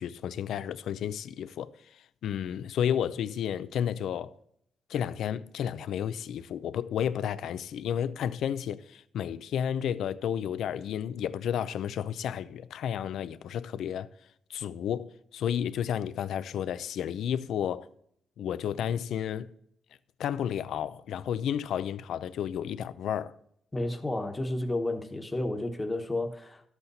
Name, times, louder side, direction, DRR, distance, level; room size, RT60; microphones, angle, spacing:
voice 1, 0.0-1.7 2.2-4.3 4.9-14.1 14.5-17.9 18.4-19.5 20.2-23.3, left 9 dB, 80° left, 0.5 m, -32 dB
voice 2, 23.7-26.6, left 2 dB, 15° left, 1.2 m, -31 dB
12.0 x 8.2 x 4.1 m
cardioid pair, 135°, 0 cm